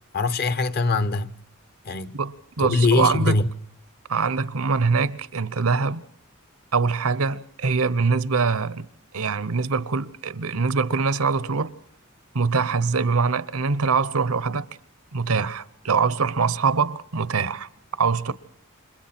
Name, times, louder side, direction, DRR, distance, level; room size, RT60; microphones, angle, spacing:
voice 1, 0.1-1.3 1.8-2.2 2.6-3.5, left 3 dB, 45° left, 0.9 m, -22 dB
voice 2, 2.1-3.3 4.1-6.0 6.7-8.9 9.1-11.7 12.3-14.6 15.1-17.7 18.0-18.3, right 5 dB, 85° right, 0.9 m, -23 dB
29.5 x 26.0 x 4.4 m
head